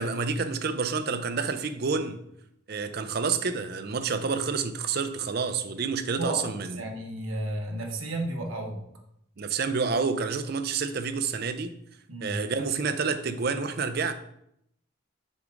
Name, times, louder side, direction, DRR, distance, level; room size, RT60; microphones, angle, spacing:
voice 1, 0.0-2.2 2.7-6.8 9.4-11.7 12.2-14.1, right 5 dB, 45° right, 10 dB, 0.5 m, -29 dB
voice 2, 6.7-8.8 12.1-12.4, right 1 dB, 75° right, 1 dB, 1.2 m, -32 dB
6.0 x 5.0 x 3.9 m, 0.75 s
head